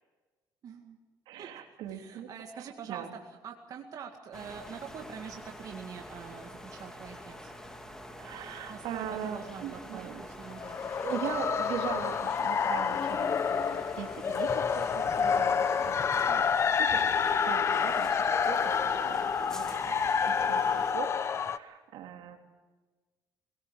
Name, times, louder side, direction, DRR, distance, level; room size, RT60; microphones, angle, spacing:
voice 1, 0.6-1.0 1.4-1.5 1.9-3.0 3.4-7.5 8.7-10.8, right 7 dB, 50° right, 3 dB, 2.1 m, -45 dB
voice 2, 1.3-3.2 8.1-10.2 11.0-16.4 16.8-17.0 17.4-20.0 20.2-22.4, right 8 dB, 80° right, 4 dB, 3.1 m, -40 dB
sound 1, 4.3-20.9, equal, 5° left, 2.6 m, -46 dB
sound 2, 10.5-21.6, left 6 dB, 35° left, 0.8 m, -28 dB
21.5 x 18.5 x 8.1 m, 1.2 s
cardioid pair, 125°, 8 cm